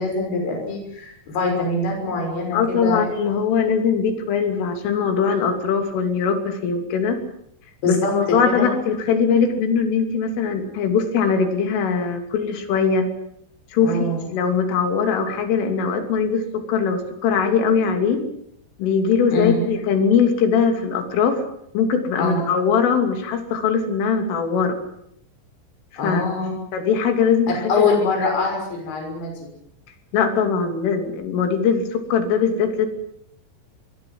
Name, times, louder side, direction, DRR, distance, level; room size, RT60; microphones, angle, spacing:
voice 1, 0.0-3.0 7.8-8.1 8.5-8.7 13.8-14.2 19.3-19.6 22.2-22.4 26.0-26.5 27.7-29.5, left 3 dB, 55° left, 1 dB, 7.9 m, -23 dB
voice 2, 2.5-7.2 7.9-13.1 13.7-18.2 18.8-21.4 21.8-24.8 25.9-26.2 26.7-27.9 30.1-32.9, left 6 dB, 80° left, 6 dB, 5.5 m, -21 dB
26.0 x 21.5 x 7.7 m, 0.73 s
omnidirectional pair, 5.6 m